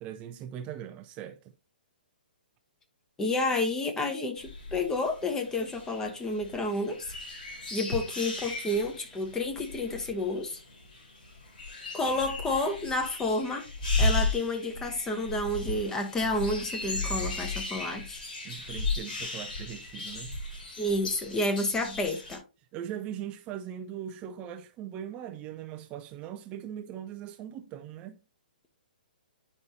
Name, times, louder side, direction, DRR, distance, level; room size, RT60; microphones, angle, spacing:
voice 1, 0.0-1.5 18.4-20.4 22.7-28.2, right 10 dB, 25° right, 0.4 m, -40 dB
voice 2, 3.2-7.1 7.7-10.6 11.9-13.7 14.0-18.2 20.8-22.4, left 2 dB, 10° left, 1.1 m, -30 dB
sound 1, 4.4-22.4, left 2 dB, 65° left, 3.6 m, -35 dB
9.5 x 5.4 x 2.7 m
hypercardioid pair, 145°, 5 cm